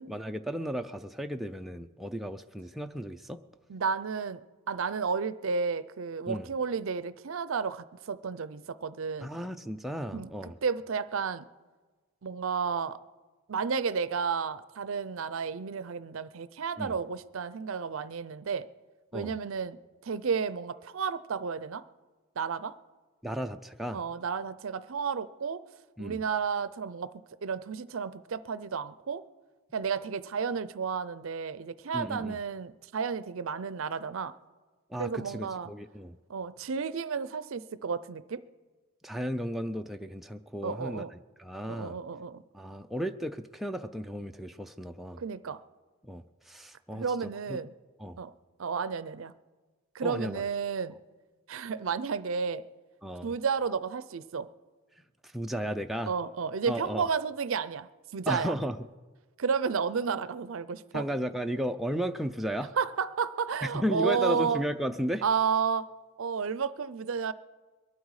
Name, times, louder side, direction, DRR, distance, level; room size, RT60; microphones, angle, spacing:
voice 1, 0.1-3.4 6.3-6.5 9.2-10.5 16.8-16.9 19.1-19.3 23.2-24.0 26.0-26.2 31.9-32.4 34.9-36.2 39.0-41.0 41.4-42.0 42.5-45.2 46.0-47.0 47.5-47.6 48.0-48.2 50.0-50.5 53.0-53.3 55.3-56.1 56.7-57.1 58.3-58.8 60.9-62.7 63.6-65.2, equal, ahead, 5 dB, 0.4 m, -34 dB
voice 2, 3.7-4.4 4.7-9.3 10.1-11.4 12.2-13.0 13.5-18.7 19.1-19.8 20.0-21.8 22.4-22.7 23.9-25.6 26.0-27.1 27.4-29.2 29.7-34.3 35.0-35.7 36.3-38.4 40.6-41.1 41.7-42.4 45.2-45.6 46.9-47.7 48.2-48.3 48.6-49.3 49.9-51.0 51.5-52.6 53.2-54.5 56.1-58.5 59.4-61.0 62.8-64.6 65.2-65.9 66.2-67.3, right 6 dB, 65° right, 15 dB, 0.5 m, -32 dB
22.5 x 12.0 x 4.8 m, 1.3 s
head